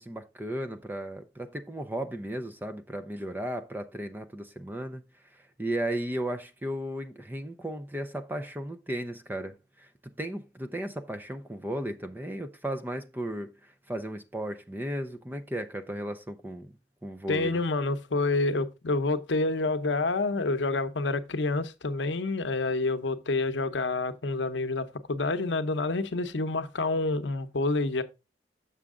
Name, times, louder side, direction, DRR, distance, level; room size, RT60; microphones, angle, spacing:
voice 1, 0.0-5.0 5.6-9.9 10.2-13.5 13.9-16.7 17.0-17.6, right 1 dB, 10° right, 0.5 m, -35 dB
voice 2, 17.3-28.0, left 3 dB, 85° left, 0.7 m, -28 dB
7.0 x 6.3 x 3.6 m
head